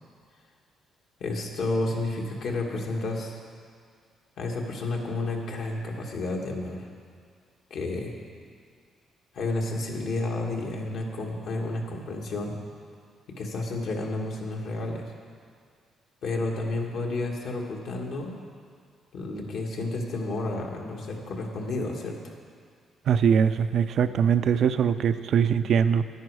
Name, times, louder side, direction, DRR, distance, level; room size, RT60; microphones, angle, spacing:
voice 1, 1.2-3.4 4.4-6.9 7.7-8.1 9.3-12.6 13.4-15.1 16.2-18.3 19.1-22.2, left 2 dB, 70° left, 0 dB, 1.7 m, -31 dB
voice 2, 23.1-26.0, right 7 dB, 65° right, 11 dB, 0.4 m, -22 dB
10.5 x 10.0 x 4.8 m, 2.1 s
cardioid pair, 90°, 0 cm